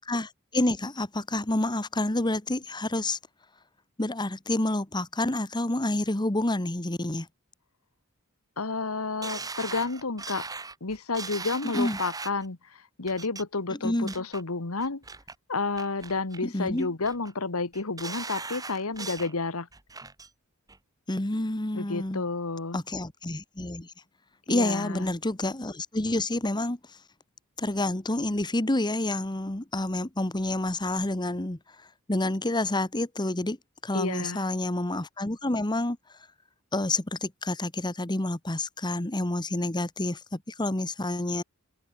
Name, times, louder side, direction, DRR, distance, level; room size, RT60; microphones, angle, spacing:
voice 1, 0.0-3.2 4.0-7.3 11.7-12.0 13.8-14.1 16.4-16.9 21.1-22.3 22.7-23.9 24.5-26.8 27.6-31.6 32.1-33.6 33.8-36.0 36.7-41.4, left 1 dB, 20° left, 1.4 m, -28 dB
voice 2, 8.6-10.5 10.8-15.0 15.5-19.7 21.7-22.8 24.5-25.1 33.9-34.5, left 3 dB, 75° left, 1.6 m, -31 dB
sound 1, 9.2-12.5 13.1-13.4 13.8-14.4 14.8-15.3 15.8-16.4 16.8-17.3 17.7-19.3 19.7-20.3 20.7-20.8, right 4 dB, 15° right, 1.7 m, -39 dB
head